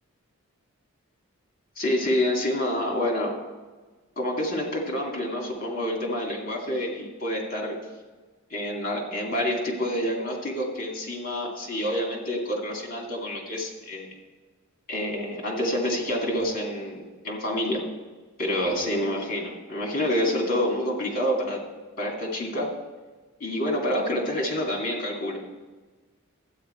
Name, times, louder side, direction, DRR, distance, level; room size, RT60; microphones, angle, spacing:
voice 1, 1.8-3.4 4.2-7.8 8.5-14.1 14.9-17.8 18.4-21.6 22.0-22.7 23.4-25.4, left 1 dB, 40° left, -1 dB, 2.5 m, -28 dB
12.0 x 9.0 x 4.5 m, 1.3 s
head